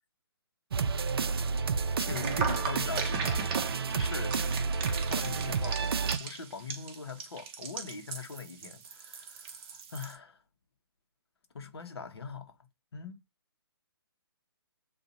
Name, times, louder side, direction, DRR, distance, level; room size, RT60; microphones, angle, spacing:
sound 1, 0.7-6.2, right 5 dB, 70° right, 0.5 m, -30 dB
voice 1, 2.0-4.4 5.0-10.4 11.5-12.6 12.9-13.2, left 5 dB, 75° left, 1.0 m, -42 dB
sound 2, 2.1-10.2, right 6 dB, 25° right, 0.7 m, -39 dB
2.8 x 2.5 x 3.9 m
hypercardioid pair, 150°, 13 cm